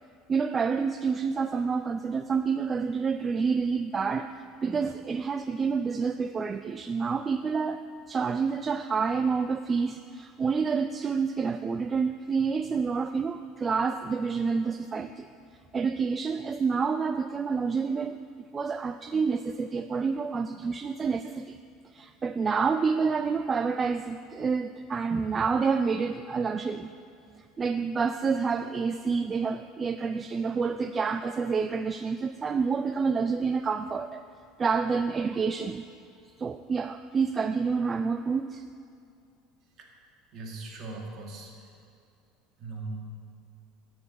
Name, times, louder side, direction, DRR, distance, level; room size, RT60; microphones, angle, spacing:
voice 1, 0.3-4.4 4.6-15.3 15.7-18.2 18.5-21.6 21.9-26.9 27.4-34.2 34.6-35.8 36.4-38.6, right 5 dB, 30° right, 10 dB, 0.3 m, -28 dB
voice 2, 40.3-41.7 42.6-43.1, right 2 dB, 50° right, 1 dB, 1.9 m, -39 dB
12.0 x 4.7 x 7.8 m, 2.5 s
supercardioid pair, 100°, 0 cm